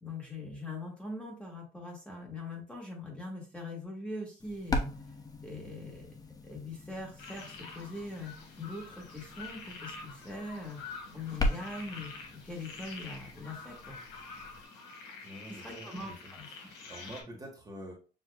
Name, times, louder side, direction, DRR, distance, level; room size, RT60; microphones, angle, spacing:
voice 1, 0.0-4.9 5.4-6.1 6.4-14.0 15.5-16.5, left 2 dB, 5° left, -1 dB, 1.5 m, -42 dB
sound 1, 4.4-14.6, left 2 dB, 20° left, 0.7 m, -39 dB
sound 2, 7.2-17.2, left 4 dB, 85° left, 1.5 m, -47 dB
voice 2, 15.2-17.9, right 1 dB, 20° right, -1 dB, 1.4 m, -47 dB
6.6 x 2.8 x 2.2 m, 0.35 s
cardioid pair, 110°, 17 cm